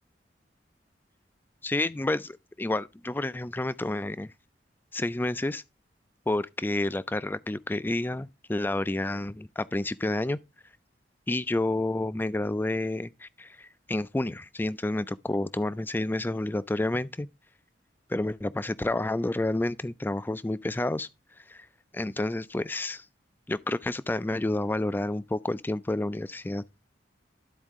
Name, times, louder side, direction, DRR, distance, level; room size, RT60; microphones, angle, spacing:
voice 1, 1.6-4.3 4.9-5.6 6.3-10.4 11.3-17.3 18.1-21.1 21.5-21.7 21.9-23.0 23.5-26.6, left 2 dB, 10° left, 0.3 m, -29 dB
12.0 x 4.5 x 3.6 m
head